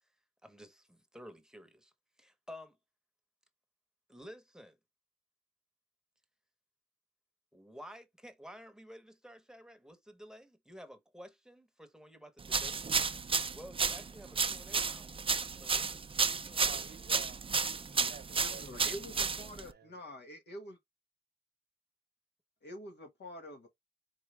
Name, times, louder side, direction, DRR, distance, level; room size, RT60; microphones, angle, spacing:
voice 1, 0.4-1.9 2.2-2.8 4.1-4.8 7.5-12.9 13.5-16.9, equal, 5° right, 0.9 m, -52 dB
sound 1, 12.5-19.7, right 5 dB, 30° right, 0.4 m, -32 dB
voice 2, 16.5-19.9, right 7 dB, 75° right, 0.8 m, -52 dB
voice 3, 17.9-20.8 22.6-23.7, equal, 80° left, 1.5 m, -47 dB
4.6 x 2.8 x 3.2 m
cardioid pair, 75°, 17 cm